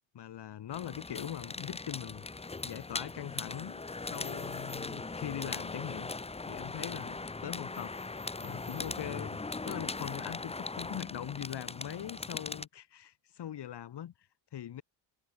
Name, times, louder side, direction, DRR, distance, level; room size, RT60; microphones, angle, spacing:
voice 1, 0.1-2.3 2.6-3.8 4.1-6.1 6.5-7.9 8.4-9.4 9.6-14.1 14.5-14.8, left 11 dB, 55° left, 3.3 m, -41 dB
sound 1, 0.7-12.7, left 3 dB, 15° left, 1.0 m, -40 dB
cardioid pair, 90°, 47 cm